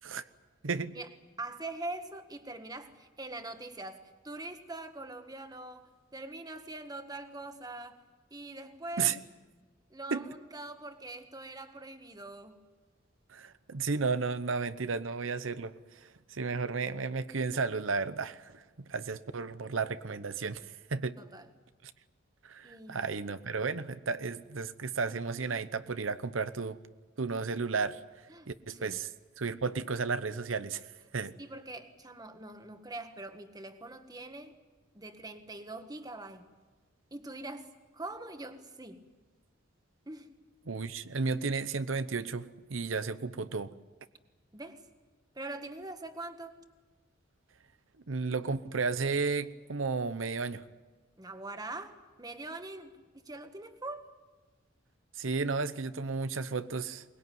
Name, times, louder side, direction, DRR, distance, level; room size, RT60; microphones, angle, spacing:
voice 1, 0.6-1.0 9.0-9.2 10.1-10.3 13.3-21.2 21.8-21.9 22.4-26.8 27.2-28.0 28.5-29.1 29.4-30.9 31.1-31.4 40.7-43.7 48.1-50.6 55.1-57.0, right 4 dB, 90° right, 13 dB, 0.8 m, -33 dB
voice 2, 1.4-8.0 8.3-9.1 9.9-12.6 21.2-21.5 22.6-23.1 28.3-29.0 31.4-34.6 34.9-36.4 37.1-39.1 40.1-40.3 44.5-44.8 45.3-46.5 51.2-54.1, right 2 dB, 20° right, 7 dB, 1.6 m, -43 dB
23.0 x 20.5 x 9.4 m, 1.2 s
head